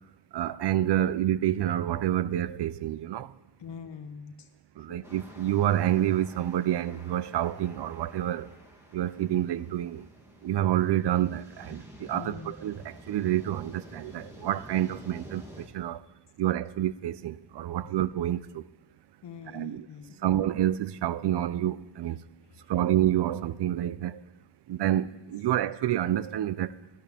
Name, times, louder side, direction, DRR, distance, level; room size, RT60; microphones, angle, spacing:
voice 1, 0.3-3.3 4.8-8.5 8.9-10.1 10.4-16.0 16.4-18.6 19.5-19.9 20.2-22.2 22.7-24.2 24.7-26.7, right 12 dB, 70° right, 0.6 m, -28 dB
voice 2, 3.6-4.5 4.9-5.0 12.1-12.6 17.8-17.9 19.2-20.4 22.5-22.7, left 6 dB, 70° left, 1.2 m, -44 dB
sound 1, 5.0-15.7, equal, 5° right, 2.7 m, -50 dB
16.0 x 13.0 x 3.5 m
cardioid pair, 70°, 43 cm